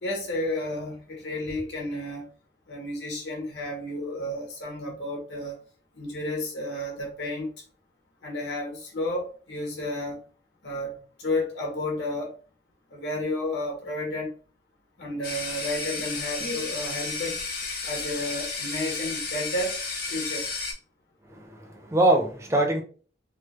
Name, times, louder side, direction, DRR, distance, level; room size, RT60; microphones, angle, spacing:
voice 1, 0.0-2.3 2.7-5.6 5.9-7.5 8.2-10.2 10.6-12.4 12.9-14.3 15.0-17.4 17.8-19.8 20.1-20.5, left 1 dB, 80° left, 1.2 m, -32 dB
sound 1, 15.2-20.7, left 4 dB, 55° left, 0.8 m, -32 dB
voice 2, 21.4-22.8, right 1 dB, 15° right, 0.5 m, -23 dB
3.3 x 2.1 x 3.0 m
head